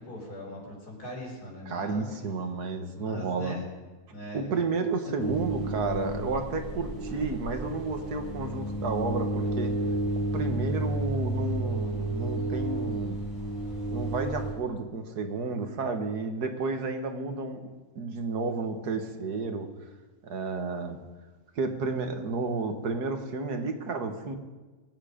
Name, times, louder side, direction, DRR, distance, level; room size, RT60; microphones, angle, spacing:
voice 1, 0.0-2.1 3.0-3.6 4.1-4.6, left 1 dB, 80° left, -1 dB, 4.7 m, -41 dB
voice 2, 1.7-3.5 4.3-9.7 10.2-13.2 13.9-17.7 18.0-19.7 20.2-21.0 21.6-24.4, right 4 dB, 85° right, 6 dB, 2.0 m, -31 dB
sound 1, 5.2-14.5, right 1 dB, 20° right, 5.9 m, -31 dB
22.0 x 9.3 x 5.1 m, 1.3 s
omnidirectional pair, 1.6 m